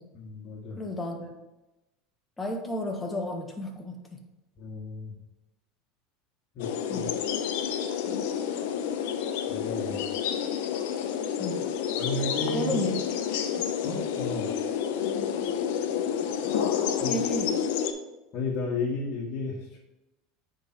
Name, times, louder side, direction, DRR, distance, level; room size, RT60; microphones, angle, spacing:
voice 1, 0.1-0.8 4.6-5.1 6.5-7.1 9.5-10.0 12.0-12.7 13.8-14.5 17.0-17.2 18.3-19.5, left 3 dB, 50° left, -5 dB, 1.7 m, -33 dB
voice 2, 0.8-1.4 2.4-4.3 6.9-7.2 11.4-11.7 12.5-12.9 13.6-13.7 14.5-14.6 17.0-17.5, left 1 dB, 15° left, 3 dB, 1.4 m, -33 dB
sound 1, 6.6-17.9, left 8 dB, 70° left, 0.7 m, -29 dB
8.9 x 3.9 x 4.7 m, 1.0 s
hypercardioid pair, 95°, 0 cm